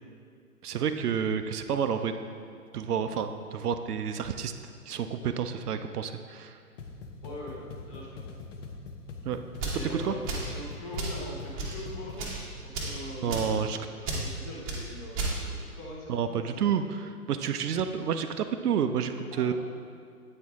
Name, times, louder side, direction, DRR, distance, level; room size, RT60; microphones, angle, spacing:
voice 1, 0.6-2.3 2.7-4.5 4.9-6.6 9.2-9.4 9.9-10.1 13.2-13.8 16.1-19.5, right 7 dB, 70° right, 8 dB, 0.6 m, -29 dB
sound 1, 6.8-12.3, left 3 dB, 50° left, 0.7 m, -43 dB
voice 2, 7.2-8.3 9.7-12.3 12.6-16.4 19.3-19.5, left 1 dB, 25° left, -3 dB, 1.3 m, -42 dB
sound 2, 9.5-9.8 10.3-10.5 11.0-11.2 11.5-11.8 12.1-12.4 12.7-13.0 13.3-13.5 14.0-14.2 14.7-14.8 15.1-15.4, right 3 dB, 25° right, 0.9 m, -32 dB
8.4 x 4.5 x 3.5 m, 2.2 s
hypercardioid pair, 135°, 47 cm